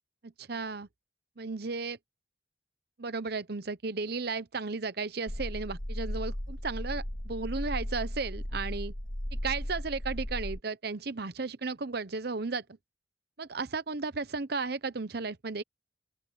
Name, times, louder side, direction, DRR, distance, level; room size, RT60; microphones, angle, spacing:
voice 1, 0.2-0.9 1.4-2.0 3.0-8.9 9.3-12.6 13.4-15.6, right 4 dB, 55° right, 0.9 m, -34 dB
sound 1, 5.3-10.6, equal, 45° left, 2.6 m, -36 dB
open air
head